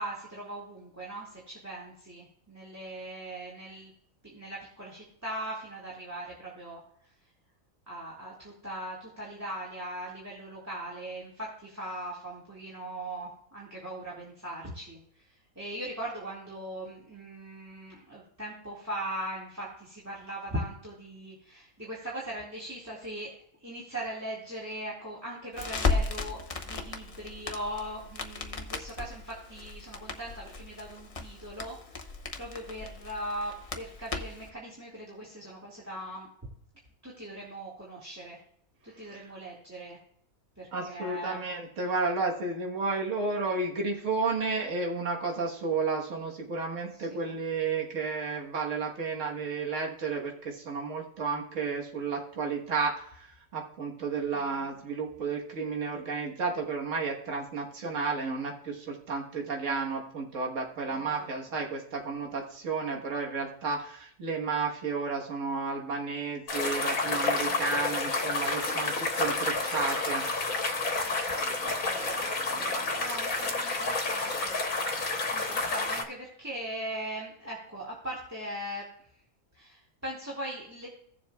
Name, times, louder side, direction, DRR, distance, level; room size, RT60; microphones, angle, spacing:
voice 1, 0.0-3.9 4.2-6.8 7.9-15.0 15.6-23.3 23.6-31.8 32.4-36.3 37.0-38.4 39.0-40.0 40.6-41.4 47.0-47.3 54.3-54.5 60.9-61.2 67.1-67.9 71.6-74.6 75.3-78.8 79.6-80.9, right 1 dB, 10° right, -4 dB, 1.9 m, -40 dB
Crackle, 25.5-34.5, left 4 dB, 35° left, 0.6 m, -35 dB
voice 2, 40.7-70.2, right 4 dB, 60° right, 0 dB, 1.7 m, -32 dB
sound 1, 66.5-76.0, left 3 dB, 70° left, 1.6 m, -30 dB
17.0 x 7.2 x 2.3 m, 0.67 s
omnidirectional pair, 1.5 m